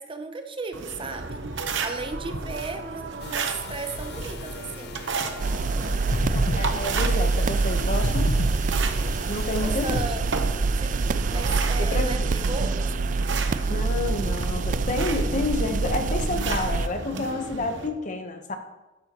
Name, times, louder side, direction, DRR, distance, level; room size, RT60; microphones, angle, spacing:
voice 1, 0.0-1.4 1.8-5.0 9.6-10.4 10.8-13.1, right 3 dB, 30° right, 6 dB, 0.8 m, -35 dB
sound 1, 0.7-17.9, right 4 dB, 80° right, 0.9 m, -34 dB
sound 2, 3.2-10.1, left 2 dB, 60° left, 0.6 m, -34 dB
sound 3, 5.4-16.9, right 3 dB, 45° right, 0.4 m, -25 dB
voice 2, 6.3-8.3 9.3-10.0 11.3-11.5 11.8-12.3 13.7-18.6, left 3 dB, 45° left, 5 dB, 1.0 m, -29 dB
11.5 x 11.0 x 3.0 m, 1.1 s
head